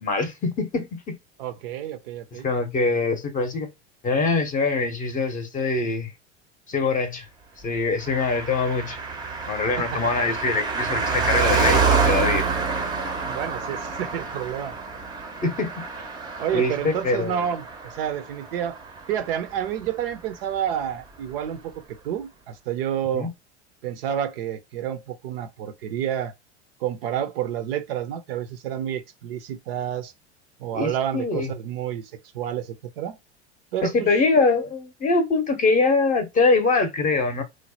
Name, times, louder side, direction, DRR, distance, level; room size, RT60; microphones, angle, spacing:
voice 1, 0.0-1.2 2.3-3.7 4.0-6.1 6.7-7.3 7.6-9.0 9.5-12.5 15.4-15.8 16.5-17.5 23.1-23.3 30.7-31.5 33.8-37.4, left 3 dB, 25° left, 0.7 m, -23 dB
voice 2, 1.4-2.5 9.8-10.0 13.2-14.8 16.4-18.8 19.1-23.3 23.8-26.3 26.8-30.1 30.6-33.2 33.7-34.1, right 10 dB, 55° right, 0.5 m, -29 dB
Car passing by, 8.0-19.9 20.1-20.2, right 5 dB, 10° right, 0.6 m, -27 dB
3.1 x 2.1 x 4.0 m
figure-of-eight pair, 80°, 34 cm